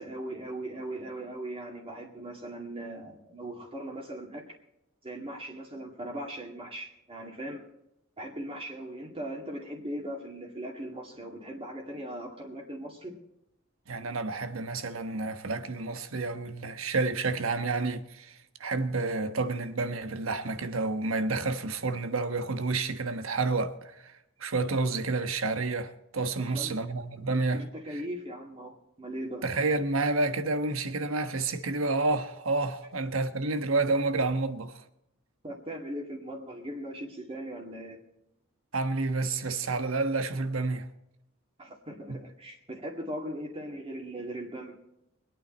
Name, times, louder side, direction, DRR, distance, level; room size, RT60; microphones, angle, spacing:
voice 1, 0.0-4.5 5.0-7.6 8.2-13.2 26.5-26.9 27.5-29.5 35.4-38.0 41.6-44.8, right 1 dB, 25° right, 2.2 m, -39 dB
voice 2, 13.9-28.0 29.4-34.8 38.7-40.9 42.1-42.2, right 3 dB, 75° right, 1.2 m, -30 dB
24.0 x 9.2 x 4.3 m
head